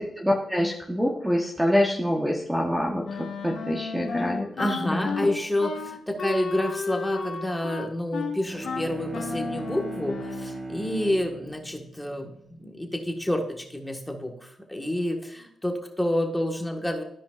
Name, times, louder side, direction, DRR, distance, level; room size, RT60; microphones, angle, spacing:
voice 1, 0.0-5.2, equal, 5° right, -1 dB, 1.3 m, -26 dB
Wind instrument woodwind instrument, 3.0-10.6, left 5 dB, 75° left, 1.3 m, -33 dB
voice 2, 4.6-17.0, left 1 dB, 10° left, 2 dB, 1.8 m, -29 dB
Bowed string instrument, 8.3-13.0, right 2 dB, 35° right, 2.0 m, -37 dB
14.0 x 5.0 x 2.6 m, 0.72 s
cardioid pair, 65°, 0 cm